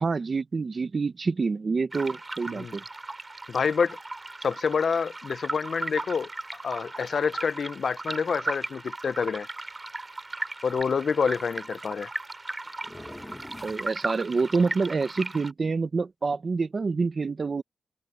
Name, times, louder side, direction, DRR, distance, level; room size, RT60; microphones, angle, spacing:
voice 1, 0.0-2.8 13.6-17.6, right 4 dB, 50° right, 0.8 m, -27 dB
sound 1, 1.9-15.5, right 2 dB, 30° right, 2.5 m, -37 dB
voice 2, 2.5-2.8 3.5-4.0 4.4-6.3 6.6-9.5 10.6-12.1, left 6 dB, 65° left, 0.4 m, -27 dB
sound 2, 8.3-8.5 9.8-9.9 10.1-10.2 10.8-11.9 12.5-14.5, left 1 dB, 20° left, 1.2 m, -46 dB
cardioid pair, 70°, 0 cm